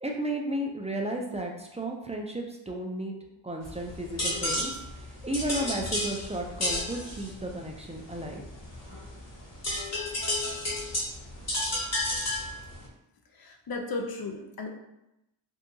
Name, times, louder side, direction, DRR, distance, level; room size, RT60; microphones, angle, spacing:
voice 1, 0.0-3.2 3.4-4.7 5.2-8.4, right 1 dB, 15° right, 1 dB, 0.3 m, -33 dB
sound 1, 3.6-12.9, left 1 dB, 35° left, 0.9 m, -33 dB
voice 2, 13.3-14.7, left 3 dB, 50° left, 3 dB, 0.6 m, -35 dB
2.7 x 2.3 x 2.6 m, 0.89 s
cardioid pair, 45°, 48 cm